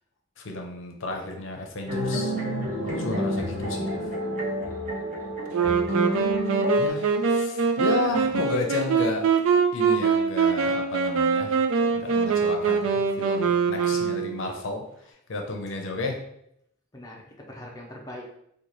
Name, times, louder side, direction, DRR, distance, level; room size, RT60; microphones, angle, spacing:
voice 1, 0.4-2.3 2.8-4.0 6.8-9.2 9.7-11.6 11.9-16.2, left 2 dB, 65° left, 2 dB, 0.6 m, -32 dB
sound 1, 1.9-6.9, equal, 35° right, 0.9 m, -29 dB
Wind instrument woodwind instrument, 5.5-14.5, right 5 dB, 80° right, 0.4 m, -23 dB
voice 2, 16.9-18.4, left 1 dB, 15° left, -2 dB, 0.5 m, -43 dB
3.9 x 2.3 x 3.0 m, 0.75 s
head